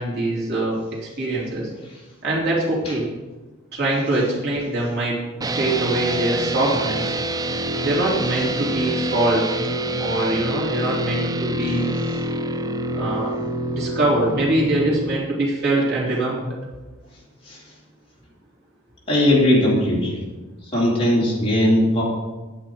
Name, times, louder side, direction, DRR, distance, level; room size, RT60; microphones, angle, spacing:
voice 1, 0.0-1.7 2.2-3.1 3.7-5.2 5.5-7.2 7.8-9.5 10.0-11.9 12.9-13.4 13.7-16.5, right 1 dB, 50° right, -5 dB, 3.2 m, -23 dB
sound 1, 5.4-15.2, right 1 dB, 20° right, 0.5 m, -26 dB
voice 2, 19.1-20.2 20.7-22.0, left 1 dB, 25° left, -5 dB, 2.9 m, -18 dB
10.5 x 9.0 x 4.6 m, 1.2 s
head